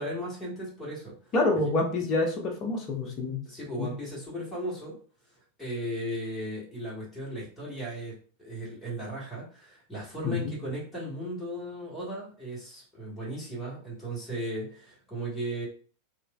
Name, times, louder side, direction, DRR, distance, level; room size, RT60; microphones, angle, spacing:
voice 1, 0.0-1.3 3.4-5.0 5.3-15.7, right 1 dB, 5° left, -7 dB, 1.3 m, -36 dB
voice 2, 1.3-3.4 3.8-3.9 10.2-10.3, left 2 dB, 30° left, 3 dB, 0.7 m, -27 dB
3.1 x 2.4 x 2.2 m, 0.41 s
figure-of-eight pair, 90°, 0 cm